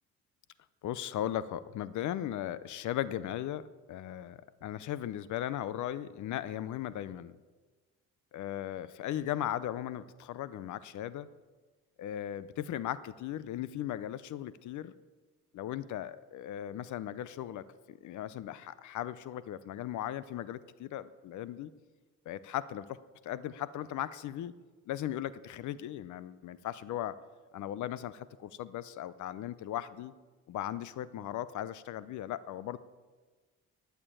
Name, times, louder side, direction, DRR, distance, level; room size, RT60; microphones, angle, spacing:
voice 1, 0.8-3.6 3.9-7.4 8.3-11.3 12.0-14.9 15.5-21.7 22.3-23.0 23.2-24.5 24.9-27.2 27.5-30.1 30.5-32.8, left 12 dB, 75° left, 16 dB, 0.6 m, -37 dB
11.0 x 6.8 x 9.0 m, 1.4 s
cardioid pair, 90°, 30 cm